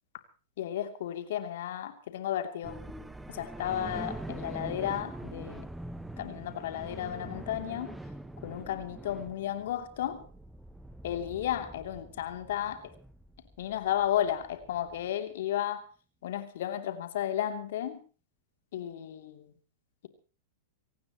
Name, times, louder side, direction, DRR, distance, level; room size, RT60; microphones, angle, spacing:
voice 1, 0.6-2.8 3.3-5.7 6.2-8.0 8.4-10.2 11.0-12.9 13.6-15.8 16.2-18.0 18.7-19.5, left 11 dB, 65° left, 8 dB, 2.9 m, -33 dB
sound 1, 2.6-15.1, right 1 dB, 5° right, 1.2 m, -44 dB
24.5 x 18.0 x 3.0 m, 0.37 s
hypercardioid pair, 105°, 0 cm